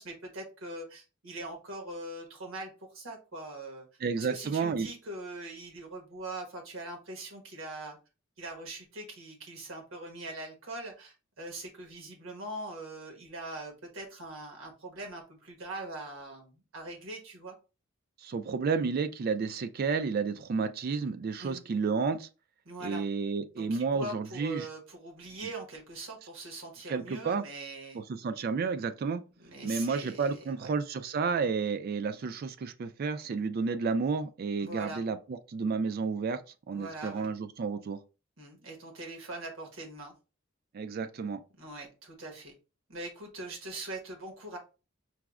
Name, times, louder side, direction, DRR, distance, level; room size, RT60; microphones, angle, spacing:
voice 1, 0.0-3.9 4.2-8.0 8.4-17.6 21.4-21.6 22.6-23.0 23.6-28.0 29.4-30.7 34.6-35.0 36.7-37.3 38.4-40.1 41.6-42.5 42.9-44.6, right 2 dB, 75° right, 1.1 m, -42 dB
voice 2, 4.0-4.9 18.2-22.3 22.8-24.7 26.9-27.4 27.9-29.2 29.6-36.4 36.7-38.0 40.7-41.4, right 5 dB, 45° right, 0.3 m, -31 dB
4.6 x 2.0 x 2.3 m
head